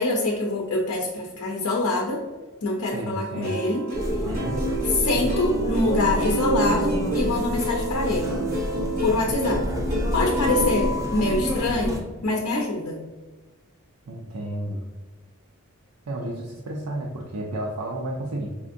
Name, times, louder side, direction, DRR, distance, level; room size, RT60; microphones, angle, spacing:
voice 1, 0.0-2.2 2.6-3.9 4.9-8.3 9.0-9.6 10.1-13.0, left 2 dB, 90° left, 0 dB, 0.5 m, -25 dB
voice 2, 2.9-3.5 4.3-4.6 14.1-14.8 16.1-18.5, right 1 dB, 90° right, -2 dB, 0.5 m, -32 dB
Plucked string instrument, 3.4-10.8, right 1 dB, 40° right, 0.9 m, -29 dB
sound 1, 3.9-12.0, equal, 15° right, 0.5 m, -28 dB
4.9 x 2.5 x 2.5 m, 1.3 s
head